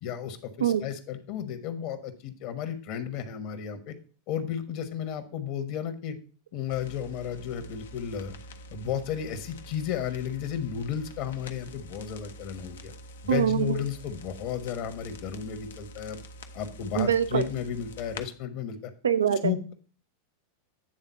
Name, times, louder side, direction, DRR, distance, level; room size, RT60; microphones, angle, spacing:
voice 1, 0.0-3.9 4.3-6.2 6.5-8.3 8.7-12.9 13.2-16.2 16.5-18.8 19.4-19.7, left 8 dB, 55° left, 9 dB, 1.2 m, -33 dB
sound 1, 6.7-18.3, left 1 dB, 80° left, 0.7 m, -46 dB
voice 2, 13.3-13.8 17.0-17.4 19.0-19.5, right 8 dB, 85° right, 12 dB, 0.5 m, -24 dB
8.9 x 3.6 x 5.6 m, 0.40 s
hypercardioid pair, 100°, 0 cm